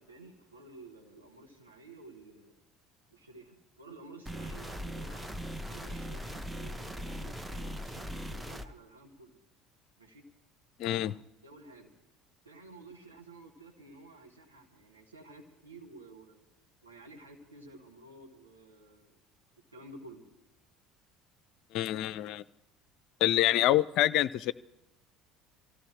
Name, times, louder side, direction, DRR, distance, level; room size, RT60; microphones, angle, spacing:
voice 1, 0.0-2.5 3.1-5.3 5.7-9.4 10.0-10.2 11.4-11.9 12.4-16.5 16.8-19.2 19.7-20.3 23.5-23.7, right 2 dB, 85° right, -1 dB, 1.9 m, -52 dB
sound 1, 4.3-8.7, equal, 10° right, 0.9 m, -39 dB
voice 2, 10.8-11.1 21.7-22.4 23.2-24.5, left 14 dB, 55° left, 18 dB, 0.4 m, -26 dB
25.0 x 15.5 x 3.2 m, 0.95 s
figure-of-eight pair, 60°, 0 cm